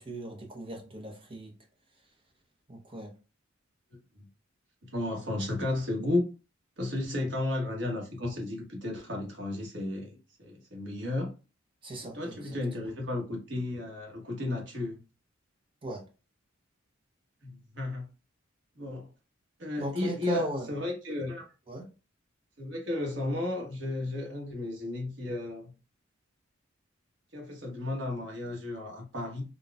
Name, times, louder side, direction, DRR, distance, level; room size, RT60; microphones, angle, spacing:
voice 1, 0.0-1.5 2.7-3.1 7.2-7.3 11.8-12.3 15.8-16.0 19.8-20.7 21.7-21.9, right 1 dB, 25° right, 0.8 m, -37 dB
voice 2, 4.8-6.3 6.8-11.3 12.0-15.0 17.4-18.1 18.7-19.1 19.6-21.4 22.6-25.7 27.3-29.4, left 2 dB, 60° right, 1.2 m, -33 dB
4.0 x 2.3 x 2.4 m
head